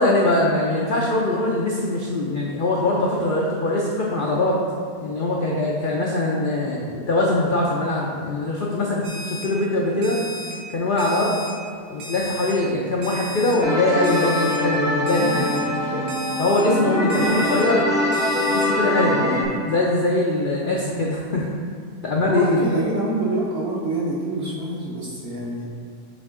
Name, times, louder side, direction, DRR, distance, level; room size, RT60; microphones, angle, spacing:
voice 1, 0.0-4.6 5.0-10.2 10.7-11.4 11.9-16.1 16.4-17.8 18.5-21.5 22.0-23.1 24.4-24.6, left 2 dB, 60° left, -4 dB, 0.5 m, -22 dB
Alarm, 9.0-9.4 10.0-10.5 11.0-11.5 12.0-12.5 13.0-13.5 14.0-14.5 15.1-15.6 16.1-16.6 17.1-17.6 18.1-18.6, right 1 dB, 65° right, 1.6 m, -35 dB
sound 1, 13.6-19.4, left 1 dB, 5° right, 0.3 m, -23 dB
voice 2, 16.9-17.3 19.0-19.4 22.2-25.7, right 2 dB, 50° right, -4 dB, 0.8 m, -27 dB
7.3 x 3.5 x 3.7 m, 2.1 s
omnidirectional pair, 1.7 m